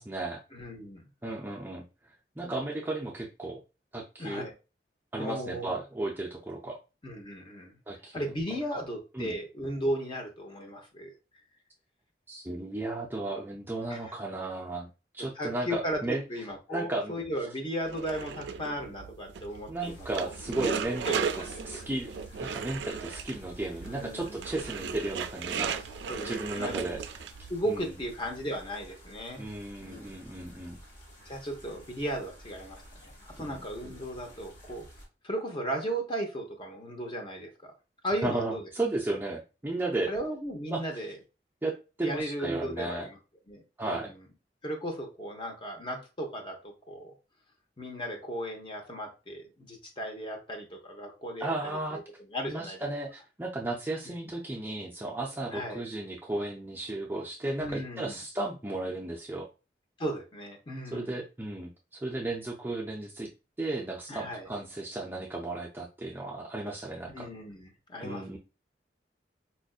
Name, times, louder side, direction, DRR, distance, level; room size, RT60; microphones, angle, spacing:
voice 1, 0.0-0.4 1.2-3.6 3.9-4.5 5.1-6.8 7.9-8.3 8.7-8.8 9.1-9.3 12.3-14.9 15.1-16.2 16.7-17.1 19.7-22.1 22.4-25.7 26.2-27.0 27.7-27.9 29.4-30.8 33.4-33.7 38.2-40.1 40.7-41.0 41.6-43.1 43.8-44.1 51.4-52.0 52.5-59.5 60.9-63.3 63.6-67.3 68.0-68.4, right 2 dB, 10° right, -1 dB, 0.4 m, -34 dB
voice 2, 0.5-1.0 2.5-2.6 4.2-4.5 5.2-5.7 7.0-7.8 8.1-11.1 13.9-14.1 15.4-20.3 21.1-21.9 23.9-24.5 26.1-26.8 27.5-29.5 29.8-30.1 31.3-32.8 33.2-34.8 35.2-37.7 38.0-38.6 40.1-41.2 42.0-43.2 43.5-44.1 44.6-47.1 47.8-51.5 51.9-52.0 52.3-52.8 55.5-55.8 57.6-58.2 60.0-61.2 64.1-64.5 67.1-68.4, right 1 dB, 30° left, 2 dB, 0.8 m, -36 dB
sound 1, 17.8-27.6, right 6 dB, 80° right, 0.3 m, -36 dB
sound 2, 19.8-35.1, equal, 50° left, 1.5 m, -51 dB
4.2 x 2.5 x 2.3 m, 0.30 s
head